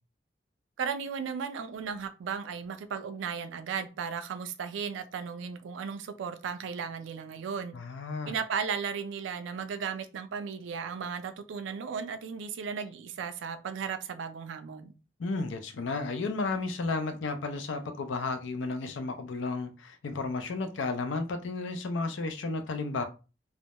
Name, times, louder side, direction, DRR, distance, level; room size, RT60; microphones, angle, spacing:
voice 1, 0.8-7.7 8.3-15.0, right 6 dB, 85° right, 0.3 m, -35 dB
voice 2, 7.7-8.3 15.2-23.0, left 3 dB, 85° left, 0.4 m, -33 dB
2.2 x 2.0 x 2.8 m
head